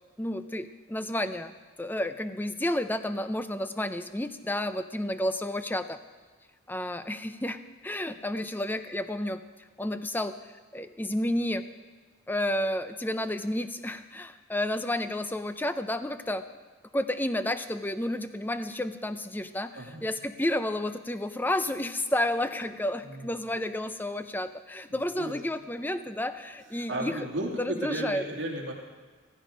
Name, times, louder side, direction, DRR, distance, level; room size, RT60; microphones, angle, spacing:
voice 1, 0.2-1.5 1.8-6.0 6.7-9.4 9.8-10.4 10.7-11.6 12.3-16.4 16.9-27.3 27.6-28.2, left 1 dB, 10° left, 10 dB, 0.5 m, -31 dB
voice 2, 19.7-20.1 23.0-23.3 24.9-25.4 26.8-28.7, right 1 dB, 60° right, -1 dB, 2.8 m, -34 dB
15.5 x 14.0 x 5.0 m, 1.4 s
head